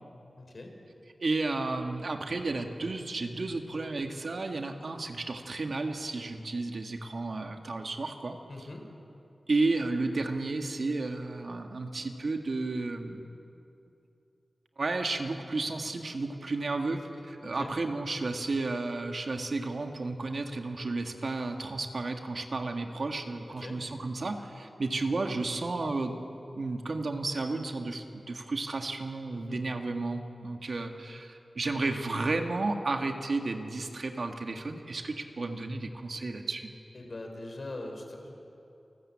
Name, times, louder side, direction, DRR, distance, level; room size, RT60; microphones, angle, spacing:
voice 1, 0.4-0.7 8.5-8.9 17.4-17.7 23.6-23.8 29.3-29.6 36.9-38.4, left 2 dB, 60° left, 3 dB, 4.4 m, -42 dB
voice 2, 1.2-8.4 9.5-13.3 14.8-26.2 26.6-36.7, right 3 dB, 65° right, 4 dB, 1.8 m, -32 dB
28.5 x 13.5 x 8.7 m, 2.8 s
cardioid pair, 45°, 0 cm